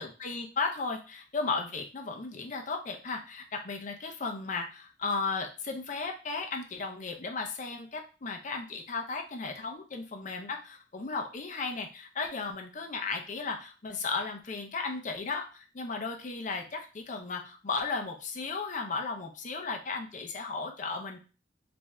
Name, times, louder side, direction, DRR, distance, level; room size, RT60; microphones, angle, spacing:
voice 1, 0.0-21.2, left 4 dB, 45° left, 3 dB, 0.6 m, -35 dB
3.4 x 2.6 x 3.1 m, 0.34 s
head